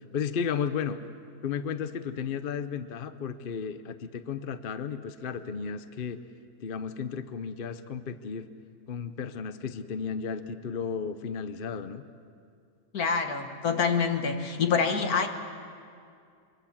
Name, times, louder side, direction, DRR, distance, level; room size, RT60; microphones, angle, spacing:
voice 1, 0.1-1.0 1.4-6.2 6.6-8.5 8.9-12.0, left 6 dB, 45° left, 11 dB, 0.8 m, -33 dB
voice 2, 12.9-15.3, left 5 dB, 70° left, 6 dB, 1.9 m, -26 dB
23.5 x 23.5 x 7.3 m, 2.4 s
omnidirectional pair, 1.6 m